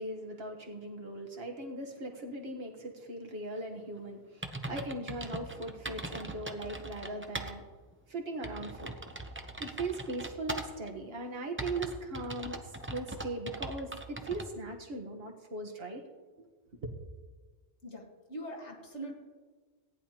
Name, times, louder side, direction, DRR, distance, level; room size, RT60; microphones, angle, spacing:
voice 1, 0.0-7.6 8.1-8.9 9.6-12.6 12.9-16.0 16.4-16.5, right 2 dB, 60° right, 2 dB, 1.5 m, -39 dB
sound 1, 4.0-4.1 4.4-7.5 7.9-8.0 8.4-10.9 11.6-14.5, right 2 dB, 15° right, 0.6 m, -40 dB
voice 2, 18.3-19.1, right 1 dB, 75° left, 0 dB, 2.2 m, -41 dB
17.5 x 10.0 x 2.9 m, 1.4 s
omnidirectional pair, 1.2 m